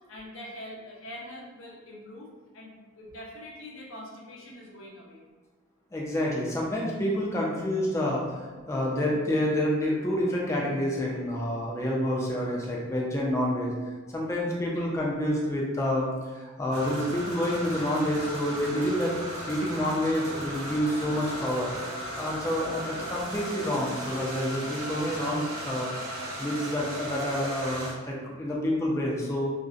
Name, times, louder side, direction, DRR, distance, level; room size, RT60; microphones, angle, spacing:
voice 1, 0.1-2.3 2.5-2.7 3.0-5.2 14.7-14.9 22.8-22.9, left 1 dB, 70° left, -3 dB, 0.6 m, -43 dB
voice 2, 5.9-13.7 14.1-21.7 22.2-29.5, equal, 15° left, -3 dB, 0.3 m, -28 dB
sound 1, 16.7-27.9, right 1 dB, 85° right, 0.8 m, -36 dB
2.5 x 2.1 x 2.4 m, 1.3 s
head